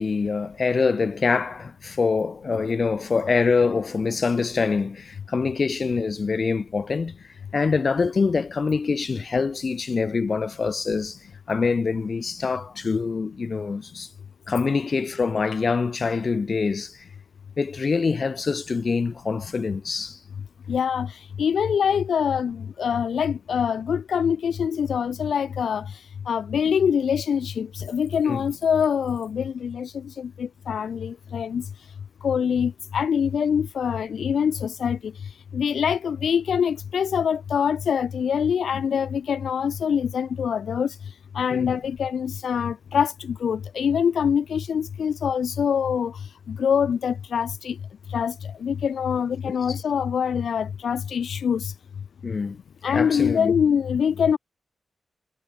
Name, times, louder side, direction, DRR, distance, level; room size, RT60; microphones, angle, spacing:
voice 1, 0.0-7.2 7.5-11.2 11.5-14.1 14.5-17.0 17.6-20.2 28.3-28.4 41.5-41.7 49.5-49.6 52.2-52.6 52.9-53.5, left 4 dB, 45° left, 1.1 m, -25 dB
voice 2, 20.7-25.9 26.3-31.6 32.2-35.1 35.5-41.0 41.3-46.2 46.5-47.8 48.1-48.3 48.6-51.7 52.8-54.4, left 7 dB, 75° left, 0.5 m, -24 dB
wide cardioid pair, 105°, 0 cm